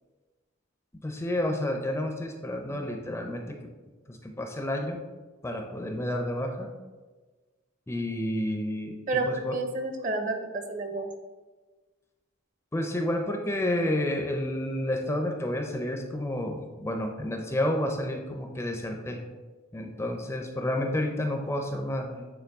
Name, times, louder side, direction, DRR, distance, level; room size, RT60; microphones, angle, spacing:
voice 1, 1.0-3.6 4.1-5.0 5.4-6.7 7.9-9.0 9.2-9.6 12.7-19.2 19.7-22.3, left 1 dB, 15° left, 3 dB, 0.4 m, -30 dB
voice 2, 9.1-11.1, right 3 dB, 40° right, 5 dB, 0.7 m, -30 dB
8.4 x 3.5 x 3.5 m, 1.3 s
head